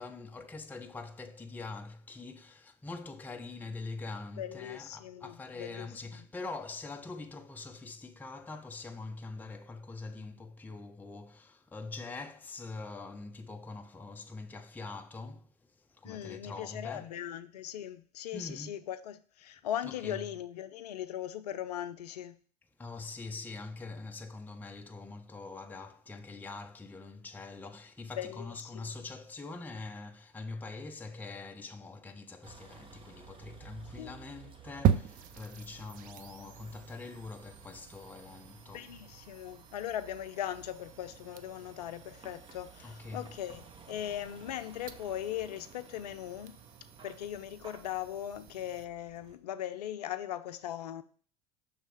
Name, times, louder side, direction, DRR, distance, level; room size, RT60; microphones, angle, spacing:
voice 1, 0.0-17.3 18.3-18.8 19.8-20.3 22.8-38.9 42.8-43.3, left 3 dB, 10° left, 0.6 m, -44 dB
voice 2, 4.4-5.9 16.0-22.4 28.2-29.0 34.0-34.1 38.7-46.5 47.0-51.0, left 11 dB, 80° left, 0.6 m, -39 dB
Vehicle, 32.4-49.4, right 5 dB, 25° right, 1.0 m, -55 dB
sound 1, 34.8-48.8, right 9 dB, 45° right, 0.6 m, -39 dB
6.5 x 3.4 x 4.8 m
hypercardioid pair, 85°, 20 cm